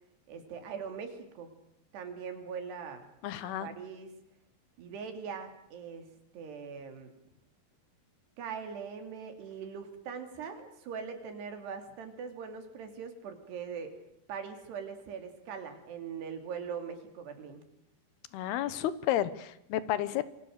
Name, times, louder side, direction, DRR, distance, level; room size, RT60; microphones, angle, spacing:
voice 1, 0.3-1.5 1.9-3.1 3.4-4.2 4.8-7.1 8.4-13.9 14.3-17.6, right 6 dB, 80° right, 6 dB, 5.0 m, -41 dB
voice 2, 3.2-3.7 18.3-20.3, left 12 dB, 75° left, 15 dB, 3.0 m, -31 dB
27.5 x 23.5 x 6.7 m, 0.79 s
omnidirectional pair, 4.8 m